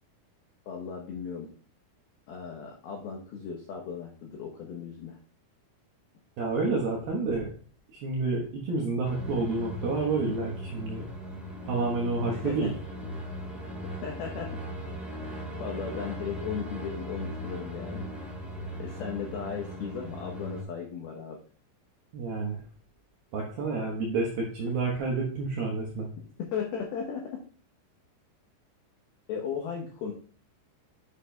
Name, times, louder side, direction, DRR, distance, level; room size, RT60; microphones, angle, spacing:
voice 1, 0.7-1.5 2.3-5.2 12.3-12.7 13.9-14.6 15.2-18.1 18.8-21.4 26.4-27.4 29.3-30.1, left 6 dB, 80° left, 1 dB, 2.2 m, -36 dB
voice 2, 6.4-7.5 7.9-11.1 11.7-12.7 22.1-22.6 23.3-26.1, right 3 dB, 75° right, -2 dB, 2.2 m, -29 dB
sound 1, 9.0-20.6, equal, ahead, 3.1 m, -38 dB
8.6 x 8.2 x 2.3 m, 0.42 s
omnidirectional pair, 5.9 m